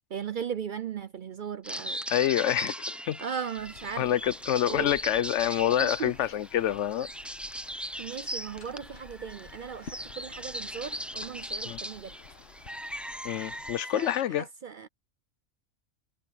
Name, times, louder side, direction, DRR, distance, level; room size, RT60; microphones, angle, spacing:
voice 1, 0.1-2.0 3.2-4.1 4.7-5.0 5.8-6.1 8.0-9.9 10.2-12.1 13.9-14.2 14.6-14.9, right 7 dB, 55° right, 0.6 m, -37 dB
sound 1, 1.6-14.2, equal, ahead, 0.5 m, -39 dB
voice 2, 2.1-3.2 4.0-7.1 11.6-11.8 13.2-14.5, left 11 dB, 75° left, 0.9 m, -27 dB
sound 2, 3.6-13.8, left 5 dB, 60° left, 1.5 m, -52 dB
omnidirectional pair, 1.3 m